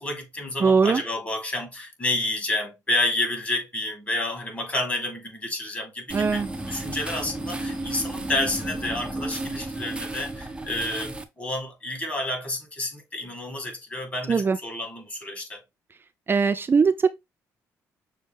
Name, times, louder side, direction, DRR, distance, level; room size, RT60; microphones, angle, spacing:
voice 1, 0.0-6.4 6.7-15.6, left 1 dB, 20° left, 2.1 m, -30 dB
voice 2, 0.6-1.0 6.1-6.5 14.3-14.6 16.3-17.1, right 5 dB, 30° right, 0.4 m, -20 dB
sound 1, 6.1-11.2, right 2 dB, 15° right, 0.8 m, -33 dB
6.4 x 2.2 x 3.5 m
cardioid pair, 75°, 7 cm